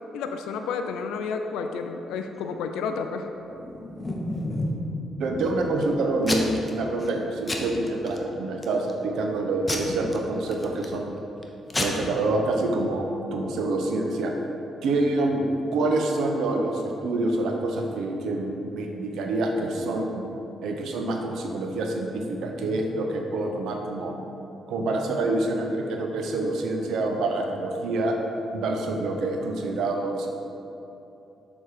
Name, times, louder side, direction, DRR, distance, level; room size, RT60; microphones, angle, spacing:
voice 1, 0.1-3.3, left 5 dB, 85° left, 6 dB, 0.3 m, -31 dB
Packing tape duct tape / Tearing, 3.5-4.9 5.3-5.8 6.2-6.7 7.0-7.2 7.5-8.2 8.6-9.0 9.7-11.0 11.4-11.5 11.7-11.9, left 1 dB, 25° left, 0.8 m, -30 dB
voice 2, 5.2-11.2 11.8-14.3 14.8-15.5 15.7-20.2 20.6-24.3 24.7-28.2 28.5-30.3, right 2 dB, 80° right, 2 dB, 0.7 m, -26 dB
6.5 x 3.7 x 4.7 m, 3.0 s
supercardioid pair, 65°, 0 cm